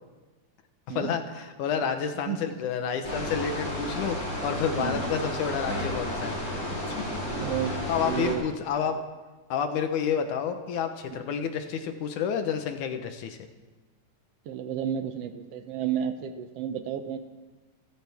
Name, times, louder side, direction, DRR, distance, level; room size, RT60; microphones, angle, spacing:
voice 1, 0.9-6.4 6.7-6.8 7.9-9.0 9.5-13.4, left 7 dB, 70° left, 7 dB, 2.5 m, -29 dB
sound 1, 3.0-8.3, left 1 dB, 35° left, 5.8 m, -32 dB
voice 2, 7.2-8.4 11.1-11.2 14.4-17.2, right 9 dB, 75° right, 8 dB, 1.4 m, -32 dB
27.5 x 14.0 x 3.6 m, 1.2 s
omnidirectional pair, 3.8 m